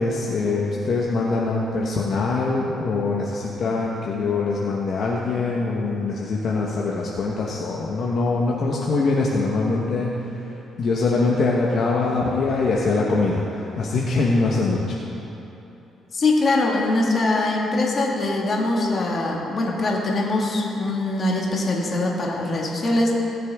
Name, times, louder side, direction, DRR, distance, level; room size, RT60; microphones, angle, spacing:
voice 1, 0.0-15.0, left 3 dB, 60° left, -3 dB, 1.1 m, -23 dB
voice 2, 16.1-23.1, left 2 dB, 40° left, -2 dB, 1.9 m, -22 dB
18.5 x 6.7 x 3.6 m, 2.9 s
cardioid pair, 90°, 0 cm